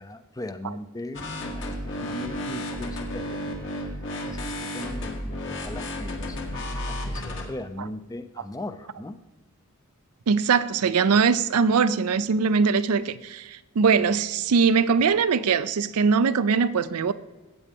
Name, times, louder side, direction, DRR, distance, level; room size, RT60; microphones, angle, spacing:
voice 1, 0.0-9.2 10.8-10.9, left 1 dB, 15° left, 0.5 m, -39 dB
sound 1, 1.1-7.4, left 1 dB, 60° left, 1.8 m, -32 dB
voice 2, 10.3-17.1, right 5 dB, 80° right, 0.5 m, -21 dB
15.0 x 8.5 x 3.5 m
head